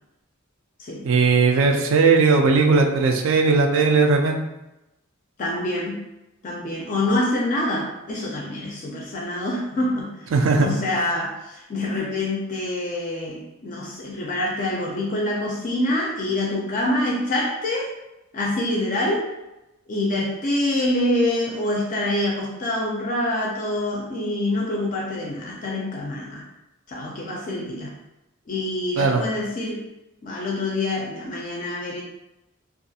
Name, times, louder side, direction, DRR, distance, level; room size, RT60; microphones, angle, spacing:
voice 1, 1.0-4.4 10.3-10.8 29.0-29.2, right 4 dB, 65° right, 4 dB, 0.4 m, -18 dB
voice 2, 5.4-6.0 6.4-10.3 10.6-17.9 18.3-19.3 19.9-26.5 26.9-28.0 28.5-29.8 30.2-32.0, left 1 dB, 40° left, -2 dB, 0.4 m, -26 dB
2.4 x 2.3 x 2.7 m, 0.94 s
head